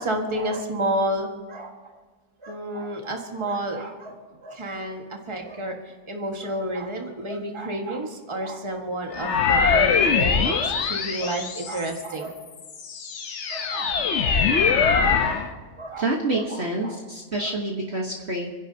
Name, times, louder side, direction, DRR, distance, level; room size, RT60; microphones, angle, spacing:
voice 1, 0.0-1.7 2.4-5.7 6.1-12.3 13.5-13.9 14.6-15.4 15.8-16.1 16.3-17.0, right 1 dB, 20° right, 2 dB, 1.6 m, -30 dB
sound 1, 9.1-12.1 12.6-15.5, left 5 dB, 50° left, 1.1 m, -22 dB
voice 2, 15.1-15.4 16.0-18.5, right 2 dB, 45° right, -1 dB, 1.5 m, -28 dB
29.0 x 11.0 x 2.8 m, 1.5 s
omnidirectional pair, 1.7 m